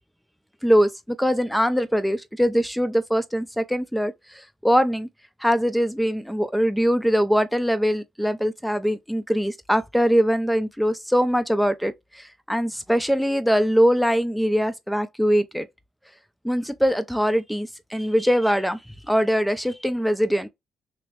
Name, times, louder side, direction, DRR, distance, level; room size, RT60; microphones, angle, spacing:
voice 1, 0.6-5.1 5.4-15.7 16.4-18.8 19.1-20.5, equal, ahead, 0.6 m, -22 dB
3.0 x 2.9 x 3.2 m
cardioid pair, 90°, 0 cm